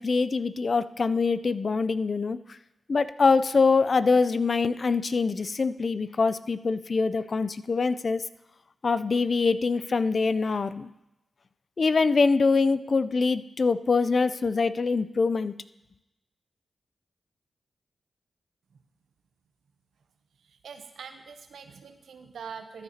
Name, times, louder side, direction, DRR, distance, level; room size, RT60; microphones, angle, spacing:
voice 1, 0.0-2.4 2.9-8.2 8.8-10.9 11.8-15.6, left 4 dB, 60° left, 14 dB, 0.4 m, -24 dB
voice 2, 20.4-22.8, right 6 dB, 85° right, 8 dB, 0.7 m, -43 dB
14.0 x 9.8 x 2.8 m, 0.95 s
cardioid pair, 45°, 0 cm